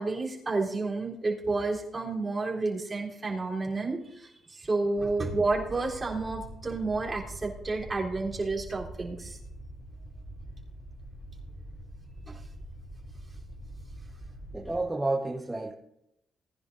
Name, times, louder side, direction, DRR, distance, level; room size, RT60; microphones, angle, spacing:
voice 1, 0.0-9.4 12.3-12.4, right 3 dB, 25° right, -4 dB, 3.8 m, -30 dB
sound 1, 5.0-14.8, right 1 dB, 30° left, 3.8 m, -44 dB
voice 2, 14.5-15.7, right 2 dB, 10° right, 0 dB, 1.4 m, -30 dB
19.5 x 10.5 x 2.7 m, 0.79 s
cardioid pair, 90°, 0 cm